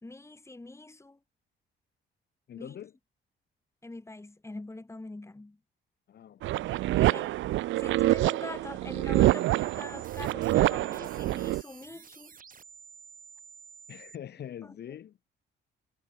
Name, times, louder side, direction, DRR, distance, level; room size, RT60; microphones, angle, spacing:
voice 1, 0.0-1.2 2.6-2.8 3.8-5.6 6.9-7.4 7.8-12.4 14.6-14.7, left 2 dB, 15° left, 2.6 m, -44 dB
voice 2, 2.5-2.9 6.1-6.7 13.9-15.3, left 10 dB, 55° left, 1.1 m, -44 dB
sound 1, 6.4-11.6, right 16 dB, 75° right, 0.4 m, -26 dB
sound 2, 9.1-14.2, right 6 dB, 45° right, 7.2 m, -51 dB
cardioid pair, 90°, 20 cm